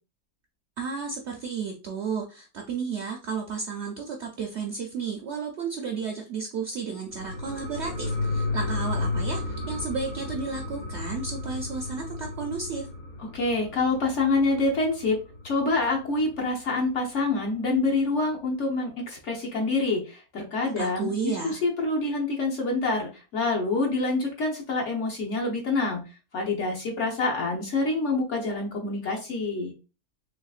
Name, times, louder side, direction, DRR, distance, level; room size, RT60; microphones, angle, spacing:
voice 1, 0.8-12.9 20.8-21.6, right 5 dB, 65° right, 2 dB, 0.7 m, -33 dB
sound 1, 7.1-16.2 16.6-16.7, left 3 dB, 70° left, 0.4 m, -33 dB
voice 2, 13.2-26.1 26.3-29.7, left 3 dB, 55° left, 0 dB, 1.1 m, -26 dB
3.5 x 3.1 x 2.4 m, 0.32 s
omnidirectional pair, 1.7 m